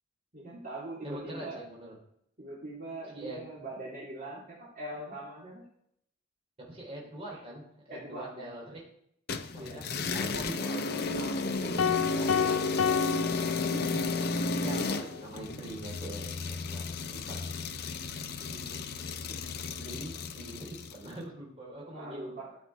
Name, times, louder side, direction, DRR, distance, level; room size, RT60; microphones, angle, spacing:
voice 1, 0.3-1.6 2.4-5.6 7.0-7.1 7.9-8.5 9.6-9.8 11.1-13.0 18.4-18.8 19.3-19.4 21.9-22.6, right 1 dB, 45° right, -6 dB, 3.2 m, -42 dB
voice 2, 1.0-1.9 3.1-3.4 6.6-7.6 7.9-8.8 9.5-11.2 13.7-14.0 14.6-17.6 18.5-18.6 19.7-22.4, right 1 dB, 30° right, -3 dB, 4.0 m, -43 dB
sound 1, 9.3-21.1, left 3 dB, 50° left, 0.7 m, -33 dB
sound 2, 11.8-14.3, left 7 dB, 85° left, 0.4 m, -30 dB
13.0 x 7.1 x 4.7 m, 0.71 s
head